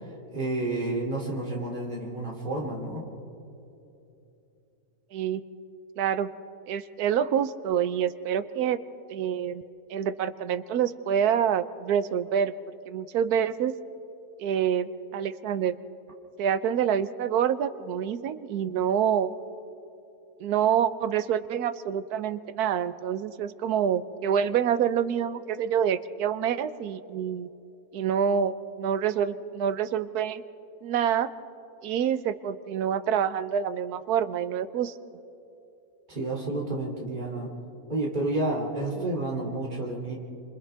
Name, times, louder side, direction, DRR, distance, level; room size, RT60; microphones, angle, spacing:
voice 1, 0.0-3.0 36.1-37.5 37.9-40.1, right 2 dB, 30° right, -3 dB, 3.1 m, -30 dB
voice 2, 5.1-5.4 6.0-6.3 6.7-8.8 9.1-9.6 9.9-12.5 12.9-13.7 14.4-15.7 16.4-19.3 20.4-27.5 27.9-30.4 30.8-31.3 31.8-34.9, right 8 dB, 80° right, 14 dB, 1.2 m, -27 dB
28.5 x 27.0 x 3.4 m, 2.8 s
omnidirectional pair, 1.6 m